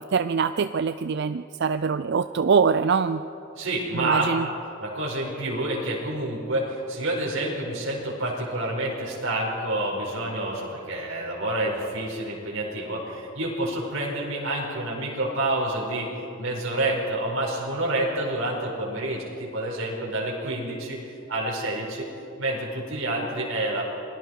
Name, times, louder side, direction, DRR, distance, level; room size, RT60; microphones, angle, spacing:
voice 1, 0.0-3.2 3.9-4.5, right 5 dB, 55° right, 11 dB, 0.4 m, -23 dB
voice 2, 3.5-4.5 4.8-16.1 16.4-21.0 21.3-22.0 22.4-23.8, right 1 dB, 90° right, -4 dB, 4.8 m, -28 dB
29.0 x 21.5 x 4.7 m, 2.9 s
head